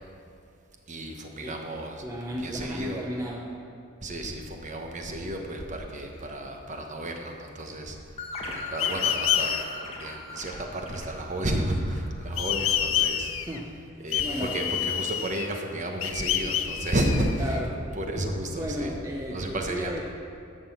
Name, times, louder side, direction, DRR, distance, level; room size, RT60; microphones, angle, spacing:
voice 1, 0.9-2.0 2.4-3.0 4.0-8.0 8.4-9.6 10.0-13.3 14.0-17.5 18.0-18.9 19.3-20.0, right 1 dB, 35° right, 3 dB, 1.1 m, -32 dB
voice 2, 2.0-3.6 13.5-13.8 14.2-14.6 17.4-17.9 18.5-20.0, equal, 15° right, -2 dB, 0.8 m, -34 dB
sound 1, 8.2-12.5, left 2 dB, 30° left, 1.5 m, -39 dB
sound 2, 8.8-9.6 12.4-13.6 14.1-15.6 16.0-17.6, left 10 dB, 75° left, 0.6 m, -28 dB
11.5 x 6.1 x 7.1 m, 2.4 s
head